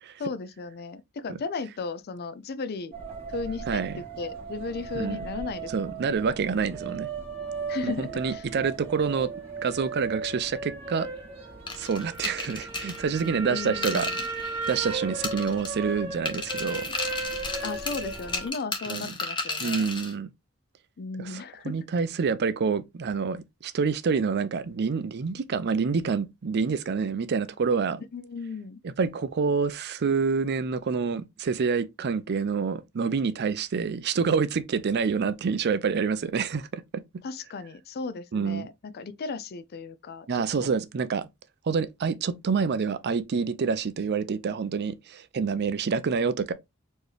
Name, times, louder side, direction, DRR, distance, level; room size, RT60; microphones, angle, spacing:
voice 1, 0.2-2.9 3.3-6.1 7.7-8.4 13.3-14.2 17.6-19.9 21.0-21.7 28.1-28.8 37.2-40.3 40.6-40.7, left 4 dB, 50° left, 0.4 m, -35 dB
sound 1, 2.9-18.5, right 4 dB, 25° right, 1.4 m, -36 dB
voice 2, 3.7-4.0 5.0-5.2 5.7-7.1 7.8-9.3 9.6-11.1 11.8-14.1 14.7-16.8 18.9-19.1 19.6-20.3 21.2-28.0 28.8-37.0 38.3-38.7 40.3-41.3 41.6-46.5, right 5 dB, 50° right, 0.4 m, -27 dB
sound 2, 11.7-14.9 15.2-15.9 16.3-20.1, left 3 dB, 20° left, 0.9 m, -34 dB
4.5 x 3.0 x 3.3 m
head